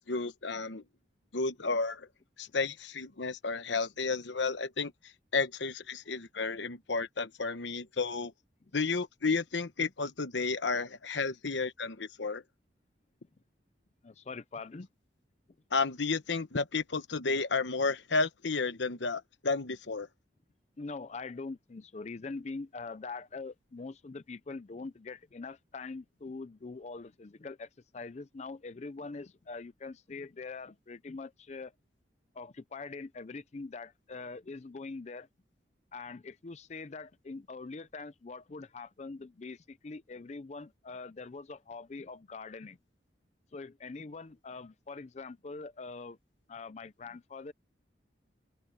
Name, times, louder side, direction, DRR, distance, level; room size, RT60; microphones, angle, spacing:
voice 1, 0.1-0.8 1.3-2.1 2.4-8.3 8.7-12.4 15.7-20.1, left 4 dB, 85° left, 1.1 m, -32 dB
voice 2, 14.0-14.9 20.8-31.7 32.3-35.3 35.9-42.8 43.5-46.2 46.5-47.5, left 3 dB, 40° left, 0.5 m, -43 dB
open air
head